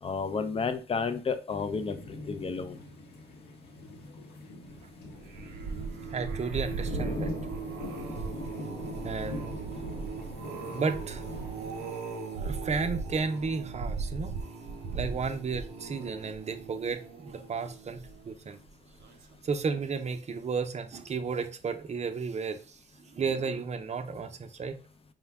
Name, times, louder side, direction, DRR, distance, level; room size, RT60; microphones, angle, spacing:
voice 1, 0.0-2.8, left 5 dB, 35° left, 0.6 m, -32 dB
sound 1, 1.5-11.9, left 2 dB, 75° left, 1.0 m, -42 dB
sound 2, 5.1-18.5 19.0-19.3 19.6-19.7, right 4 dB, 85° right, 0.6 m, -38 dB
voice 2, 6.1-7.3 9.0-9.6 10.7-11.3 12.4-14.3 14.9-18.6 19.4-24.8, right 5 dB, 40° right, 0.6 m, -33 dB
4.8 x 2.1 x 3.5 m
cardioid pair, 65°, 17 cm